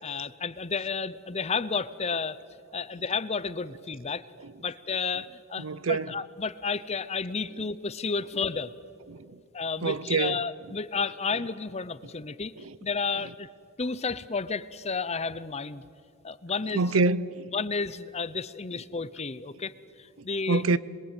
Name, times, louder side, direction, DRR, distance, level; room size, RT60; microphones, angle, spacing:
voice 1, 0.0-2.4 2.7-4.2 4.6-8.7 9.5-12.5 12.8-13.5 13.8-15.8 16.2-16.9 17.5-19.7 20.2-20.6, left 4 dB, 30° left, 0.8 m, -31 dB
voice 2, 5.6-6.2 8.3-8.4 9.1-9.4 9.8-10.4 12.6-12.8 13.2-13.3 16.7-17.5 20.5-20.8, right 3 dB, 65° right, 0.6 m, -27 dB
27.0 x 22.0 x 9.1 m
head